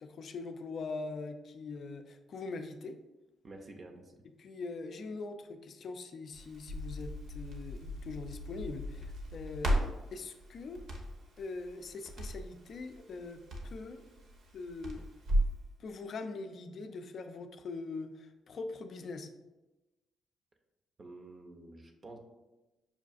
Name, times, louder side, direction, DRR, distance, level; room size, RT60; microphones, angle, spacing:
voice 1, 0.0-3.0 4.4-10.8 11.4-14.0 14.5-15.1 15.8-19.3, left 3 dB, 55° left, 7 dB, 0.3 m, -42 dB
voice 2, 3.4-4.1 21.0-22.2, right 2 dB, 40° right, 3 dB, 0.5 m, -49 dB
Crackle, 6.3-15.6, equal, 70° right, 0.7 m, -36 dB
5.6 x 2.4 x 2.4 m, 1.1 s
cardioid pair, 90°, 0 cm